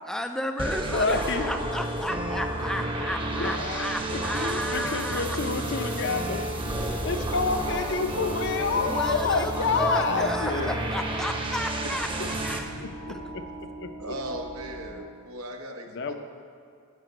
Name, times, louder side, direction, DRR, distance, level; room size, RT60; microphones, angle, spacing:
voice 1, 0.1-5.4 8.7-12.7, equal, 5° left, 6 dB, 0.3 m, -33 dB
sound 1, 0.6-12.6, right 1 dB, 25° right, 0.8 m, -31 dB
voice 2, 0.9-1.5 3.3-4.0 4.7-6.5 7.0-10.8 12.8-13.1 13.6-14.1 15.9-16.1, left 4 dB, 55° left, 7 dB, 0.7 m, -28 dB
voice 3, 4.3-4.6 7.1-7.2 11.8-11.9 13.1-13.2 14.0-16.1, equal, 80° right, 3 dB, 1.1 m, -37 dB
sound 2, 6.1-15.0, right 1 dB, 50° right, 1.0 m, -42 dB
10.5 x 5.3 x 7.8 m, 2.4 s
head